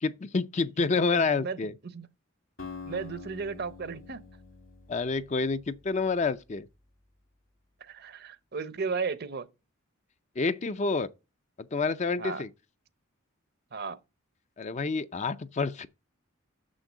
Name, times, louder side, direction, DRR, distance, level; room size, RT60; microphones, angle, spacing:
voice 1, 0.0-1.7 4.9-6.7 10.4-11.1 11.6-12.5 14.6-15.9, left 4 dB, 35° left, 0.4 m, -28 dB
voice 2, 1.1-1.6 1.9-2.1 2.8-4.2 7.8-9.5 12.2-12.4 13.7-14.0, right 5 dB, 50° right, 0.7 m, -34 dB
Acoustic guitar, 2.6-6.7, left 4 dB, 65° left, 1.8 m, -46 dB
6.7 x 6.3 x 7.3 m
head